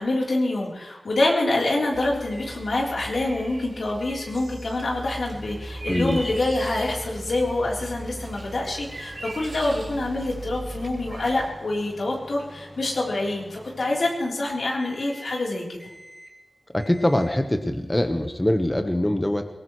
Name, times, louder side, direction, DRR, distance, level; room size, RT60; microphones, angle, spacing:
voice 1, 0.0-15.8, left 2 dB, 85° left, -3 dB, 3.8 m, -26 dB
sound 1, 1.9-11.5, right 2 dB, 75° right, 5.6 m, -38 dB
Microwave oven, 2.3-2.7 3.0-3.3 4.0-4.4 4.8-14.4 14.8-15.4 15.8-16.4 16.8-17.4, equal, ahead, 3.9 m, -47 dB
voice 2, 5.9-6.2 16.7-19.5, left 1 dB, 20° left, 6 dB, 1.2 m, -23 dB
22.0 x 18.5 x 3.2 m, 1.0 s
cardioid pair, 50°, 0 cm